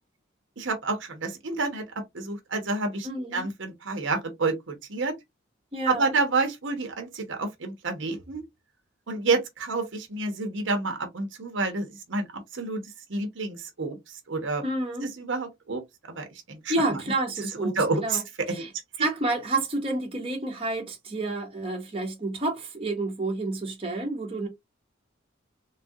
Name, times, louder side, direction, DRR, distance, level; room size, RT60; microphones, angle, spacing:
voice 1, 0.6-1.8 2.1-5.1 5.9-8.4 9.1-12.8 13.1-14.0 14.3-14.6 15.2-15.8 16.2-17.0 17.6-18.2 19.0-19.1, right 3 dB, 65° right, 0.8 m, -29 dB
voice 2, 3.0-3.5 5.7-6.1 14.6-15.1 16.7-18.2 18.5-18.7 19.0-24.5, right 2 dB, 25° right, 0.8 m, -29 dB
3.4 x 2.3 x 2.6 m
head